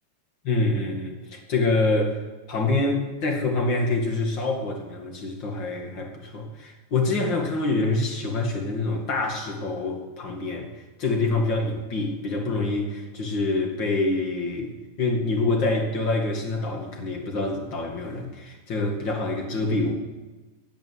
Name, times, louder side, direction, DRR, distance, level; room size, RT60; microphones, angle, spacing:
voice 1, 0.4-2.2 2.5-10.7 11.0-14.7 15.0-20.0, left 2 dB, 35° left, 2 dB, 2.0 m, -26 dB
15.5 x 9.3 x 9.4 m, 1.2 s
omnidirectional pair, 5.0 m